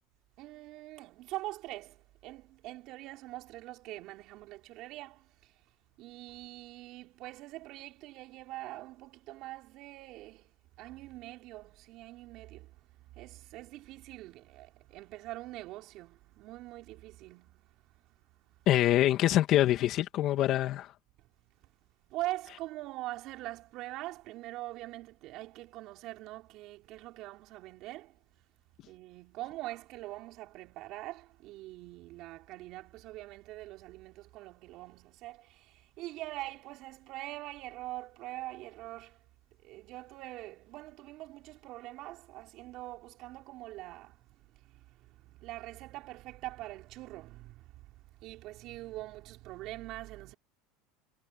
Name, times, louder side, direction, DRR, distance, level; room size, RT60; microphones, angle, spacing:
voice 1, 0.4-5.7 6.0-18.7 21.2-21.3 21.6-28.5 28.8-39.3 39.6-50.3, right 17 dB, 55° right, 5.8 m, -44 dB
voice 2, 18.7-20.9, left 13 dB, 45° left, 2.4 m, -25 dB
supercardioid pair, 130°, 0 cm